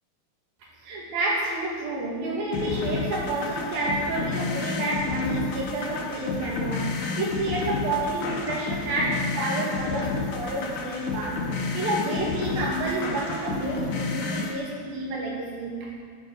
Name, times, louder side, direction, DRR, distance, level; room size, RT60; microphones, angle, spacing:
voice 1, 0.8-15.9, right 2 dB, 75° right, -3 dB, 4.5 m, -29 dB
sound 1, 2.5-14.5, left 4 dB, 60° left, 2.7 m, -30 dB
14.0 x 11.5 x 6.8 m, 2.1 s
omnidirectional pair, 4.2 m